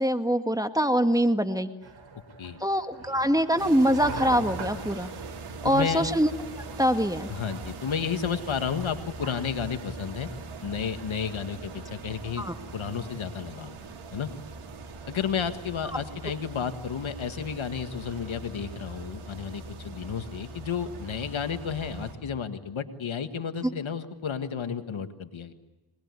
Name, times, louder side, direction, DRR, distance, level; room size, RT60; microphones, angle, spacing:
voice 1, 0.0-1.7 2.6-5.1 5.6-6.3 6.8-7.3 12.4-12.5, equal, 5° right, 7 dB, 1.8 m, -24 dB
sound 1, 1.8-11.9, right 4 dB, 65° right, 4.3 m, -44 dB
sound 2, 3.6-22.1, right 3 dB, 90° right, 3.5 m, -41 dB
voice 2, 5.6-6.1 7.3-10.3 10.6-13.8 14.1-14.3 15.1-25.5, left 7 dB, 70° left, 8 dB, 1.9 m, -32 dB
26.0 x 20.5 x 9.7 m, 1.1 s
cardioid pair, 50°, 49 cm